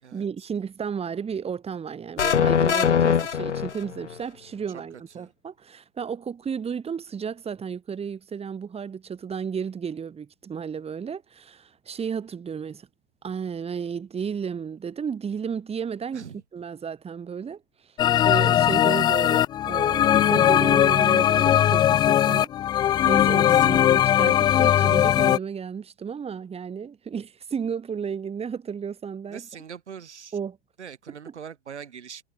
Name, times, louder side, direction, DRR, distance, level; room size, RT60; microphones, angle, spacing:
voice 1, 0.1-12.9 13.2-16.2 16.5-17.9 18.2-22.5 22.8-29.4 30.3-30.6, right 7 dB, 15° right, 4.5 m, -33 dB
sound 1, 2.2-4.2, left 7 dB, 80° left, 1.3 m, -22 dB
sound 2, 18.0-25.4, left 11 dB, 15° left, 0.4 m, -19 dB
voice 2, 23.4-24.3 29.3-30.4 30.8-32.2, right 7 dB, 75° right, 5.4 m, -42 dB
figure-of-eight pair, 105°, 35 cm